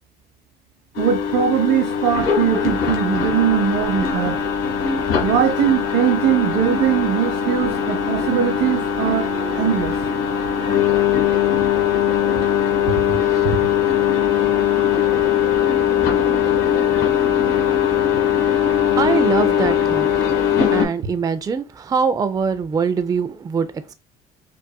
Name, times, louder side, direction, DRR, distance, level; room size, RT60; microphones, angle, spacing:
sound 1, 0.9-20.8, left 9 dB, 90° left, 1.2 m, -20 dB
voice 1, 1.0-4.4 5.2-9.3 9.5-10.0, right 9 dB, 80° right, 0.8 m, -20 dB
voice 2, 19.0-20.1 20.7-23.7, right 6 dB, 20° right, 0.4 m, -22 dB
5.3 x 2.5 x 2.2 m
cardioid pair, 110°, 17 cm